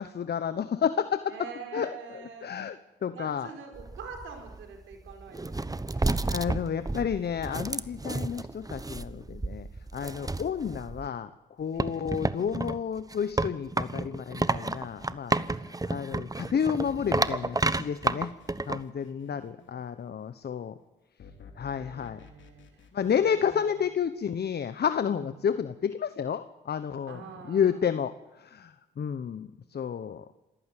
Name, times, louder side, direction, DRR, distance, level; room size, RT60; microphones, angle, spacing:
voice 1, 0.0-1.3 1.7-3.5 6.0-11.3 11.6-15.4 15.9-18.3 18.7-20.7 21.6-22.2 22.9-30.2, left 7 dB, 55° left, 12 dB, 1.1 m, -31 dB
voice 2, 1.3-2.5 3.1-6.1 10.1-10.4 11.7-12.1 15.4-15.8 19.0-19.7 21.6-23.6 25.1-25.3 27.0-27.8, right 5 dB, 85° right, 4 dB, 4.8 m, -46 dB
sound 1, 3.7-11.1 11.8-18.8, right 2 dB, 20° right, 1.1 m, -31 dB
sound 2, 14.4-15.6 16.9-19.9 21.2-24.4, left 6 dB, 70° left, 3.2 m, -52 dB
27.0 x 15.0 x 9.3 m, 1.1 s
supercardioid pair, 55°, 20 cm